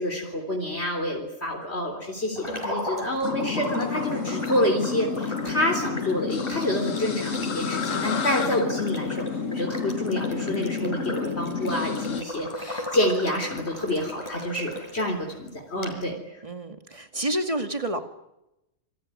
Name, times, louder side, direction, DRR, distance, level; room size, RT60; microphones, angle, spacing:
voice 1, 0.0-16.2, left 1 dB, 55° left, 1 dB, 4.0 m, -28 dB
sound 1, 2.3-15.1 15.5-15.6 15.8-15.9, left 1 dB, 20° left, 5.5 m, -36 dB
sound 2, 3.2-12.2, left 6 dB, 80° left, 1.6 m, -30 dB
voice 2, 16.4-18.0, right 1 dB, 25° right, 6 dB, 2.3 m, -29 dB
27.5 x 21.5 x 9.9 m, 0.91 s
omnidirectional pair, 1.3 m